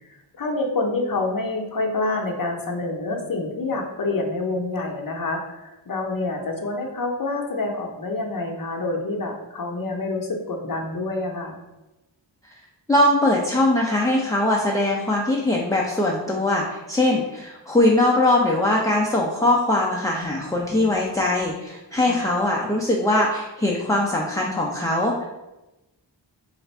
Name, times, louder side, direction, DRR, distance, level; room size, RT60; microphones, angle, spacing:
voice 1, 0.3-11.6 22.0-22.3, left 2 dB, 50° left, 2 dB, 0.7 m, -27 dB
voice 2, 12.9-25.3, left 1 dB, 10° left, -3 dB, 0.4 m, -21 dB
3.3 x 2.5 x 4.2 m, 0.99 s
wide cardioid pair, 70°, 44 cm